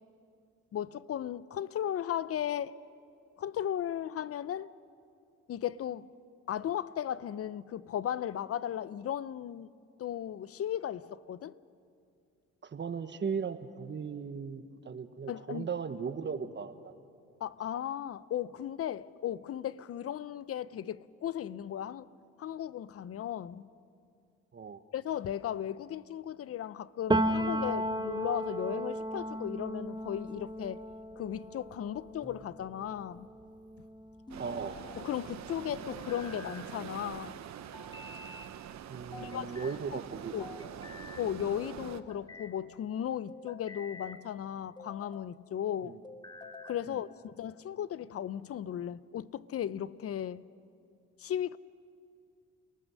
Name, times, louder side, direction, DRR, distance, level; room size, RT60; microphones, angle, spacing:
voice 1, 0.7-2.7 3.4-4.7 5.5-6.1 6.5-9.7 10.0-11.5 15.3-15.7 17.4-22.1 22.4-23.7 24.9-30.8 31.2-33.3 35.0-37.4 39.2-40.0 40.3-40.5 41.2-46.0 46.6-50.4 51.2-51.6, left 10 dB, 50° left, 0.6 m, -36 dB
voice 2, 12.6-16.9 24.5-24.8 34.4-34.8 38.9-40.9 45.8-46.0 46.9-47.0, right 6 dB, 35° right, 1.2 m, -38 dB
Piano, 27.1-34.7 35.1-36.6, right 1 dB, 15° right, 1.0 m, -35 dB
sound 1, 32.2-32.9 34.3-35.0 35.9-36.7 37.7-38.5 39.1-39.8 40.4-41.3 41.9-42.5 43.3-44.2 44.8-45.3 46.0-46.9, left 3 dB, 15° left, 1.3 m, -49 dB
sound 2, 34.3-42.0, right 9 dB, 65° right, 1.0 m, -45 dB
29.5 x 19.5 x 6.3 m
cardioid pair, 90°, 30 cm